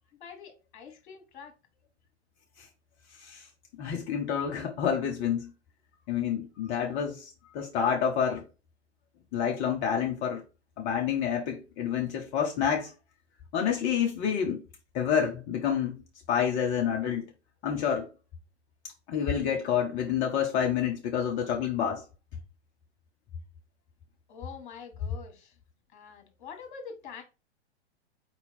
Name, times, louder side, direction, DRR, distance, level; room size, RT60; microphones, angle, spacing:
voice 1, 0.2-1.5 24.3-25.6 25.9-27.2, left 6 dB, 45° left, 1.4 m, -45 dB
voice 2, 3.8-5.5 6.1-8.4 9.3-10.4 10.8-12.9 13.5-14.6 14.9-16.0 16.3-17.3 17.6-18.1 19.1-22.0, left 8 dB, 20° left, 0.5 m, -28 dB
4.5 x 2.8 x 4.1 m
figure-of-eight pair, 105°, 34 cm